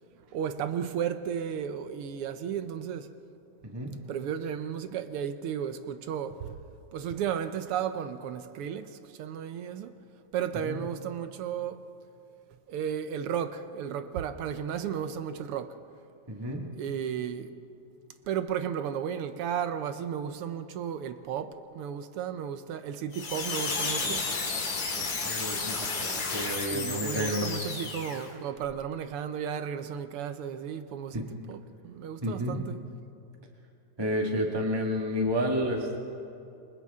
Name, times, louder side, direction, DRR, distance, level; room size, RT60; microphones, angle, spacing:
voice 1, 0.3-3.1 4.1-6.6 6.9-9.9 10.3-11.8 12.7-15.8 16.8-17.5 18.3-24.3 26.7-32.8, right 8 dB, 80° right, 1.2 m, -34 dB
voice 2, 3.6-3.9 10.6-10.8 16.3-16.6 25.2-27.5 31.1-31.2 32.2-32.6 34.0-36.0, equal, 15° right, 1.0 m, -30 dB
sound 1, 23.1-28.3, left 4 dB, 75° left, 4.1 m, -32 dB
29.0 x 24.5 x 3.6 m
omnidirectional pair, 3.4 m